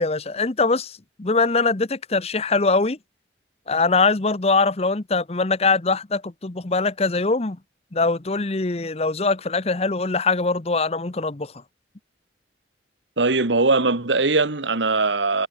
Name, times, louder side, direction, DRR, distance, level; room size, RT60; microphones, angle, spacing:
voice 1, 0.0-3.0 3.7-7.6 7.9-11.5, left 3 dB, 35° left, 0.9 m, -22 dB
voice 2, 13.2-15.5, right 3 dB, 80° right, 1.8 m, -20 dB
head